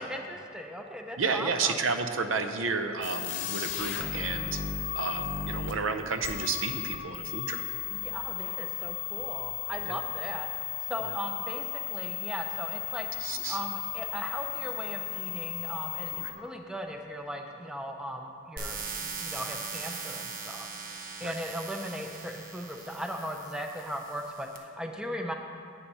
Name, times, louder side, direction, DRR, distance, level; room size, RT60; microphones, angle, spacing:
voice 1, 0.0-1.8 7.9-13.1 13.5-25.3, equal, 5° right, 3 dB, 0.5 m, -38 dB
voice 2, 1.2-4.6 5.0-7.6 9.9-10.0 13.2-13.6 16.1-16.3 21.2-21.3, right 4 dB, 85° right, 8 dB, 0.6 m, -31 dB
sound 1, 3.0-16.3, left 11 dB, 65° left, 0.8 m, -35 dB
sound 2, 18.6-24.6, right 4 dB, 45° right, 0.9 m, -40 dB
8.7 x 7.1 x 5.5 m, 2.6 s
head